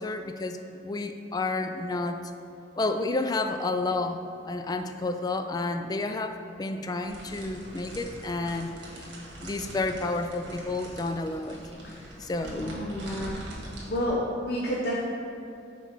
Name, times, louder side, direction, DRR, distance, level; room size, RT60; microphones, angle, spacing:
voice 1, 0.0-2.2 2.8-4.2 4.4-8.7 9.4-11.6 12.2-12.8, left 2 dB, 20° left, 7 dB, 0.3 m, -30 dB
sound 1, 7.0-14.1, right 1 dB, 75° right, 1.5 m, -43 dB
voice 2, 12.6-13.4 13.9-15.0, equal, 60° left, -4 dB, 0.8 m, -30 dB
5.8 x 4.3 x 5.8 m, 2.6 s
head